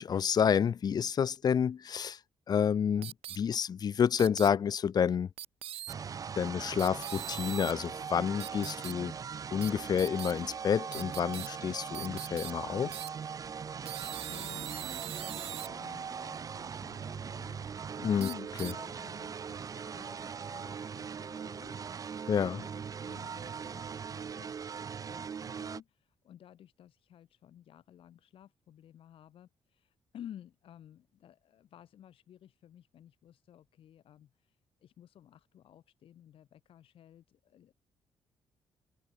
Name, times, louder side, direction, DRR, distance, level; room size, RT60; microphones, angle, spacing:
voice 1, 0.0-2.2 2.5-5.3 6.4-9.1 9.5-13.0 18.0-18.3 18.6-18.7 22.3-22.6, left 7 dB, 40° left, 1.5 m, -29 dB
sound 1, 3.0-3.4 4.2-4.5 5.4-5.9 6.8-7.7 8.4-8.9 9.6-9.7 10.0-10.3 10.9-11.5 11.9-12.5 12.9-13.1 13.8-15.7 18.2-18.7, right 12 dB, 70° right, 1.9 m, -41 dB
sound 2, 5.9-25.8, right 6 dB, 35° right, 2.1 m, -40 dB
voice 2, 14.0-21.8 22.1-24.8 25.1-37.8, left 10 dB, 65° left, 7.8 m, -53 dB
cardioid pair, 160°, 10 cm